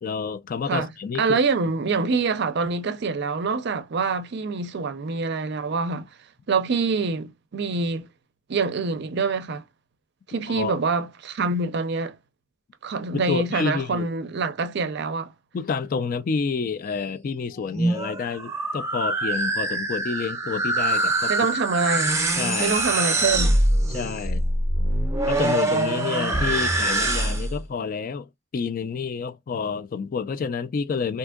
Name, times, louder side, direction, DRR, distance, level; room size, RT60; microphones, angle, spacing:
voice 1, 0.0-1.4 10.5-10.8 13.1-14.1 15.5-21.3 22.4-23.1 23.9-24.4 25.3-31.2, left 5 dB, 40° left, 0.3 m, -29 dB
voice 2, 1.2-6.1 6.5-8.1 8.5-9.6 10.3-12.2 12.8-15.3 21.3-22.2 22.6-23.6, right 4 dB, 55° right, 0.5 m, -25 dB
sound 1, 17.6-27.6, right 2 dB, 15° right, 0.6 m, -24 dB
3.5 x 2.8 x 2.3 m
head